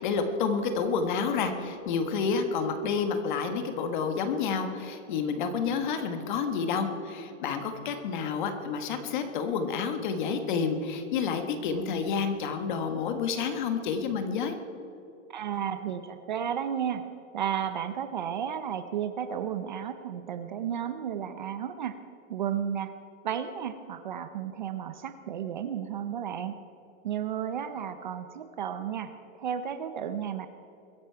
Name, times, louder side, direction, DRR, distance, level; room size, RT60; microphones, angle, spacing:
voice 1, 0.0-14.5, left 5 dB, 40° left, 7 dB, 1.4 m, -29 dB
voice 2, 15.3-17.0 17.3-22.0 22.3-22.9 23.2-26.6 27.0-29.1 29.4-30.5, right 9 dB, 40° right, 10 dB, 0.5 m, -33 dB
22.5 x 10.5 x 4.6 m, 2.8 s
supercardioid pair, 180°, 39 cm